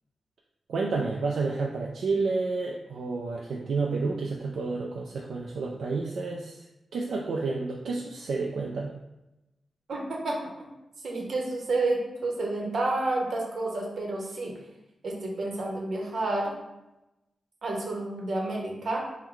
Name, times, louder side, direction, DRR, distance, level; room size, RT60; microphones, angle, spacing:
voice 1, 0.7-6.6 6.9-8.9, right 3 dB, 85° right, -1 dB, 0.3 m, -30 dB
voice 2, 9.9-10.7 11.0-14.6 15.0-16.5 17.6-19.1, right 2 dB, 65° right, -1 dB, 0.8 m, -30 dB
3.8 x 2.1 x 4.5 m, 0.95 s
wide cardioid pair, 140°, 0 cm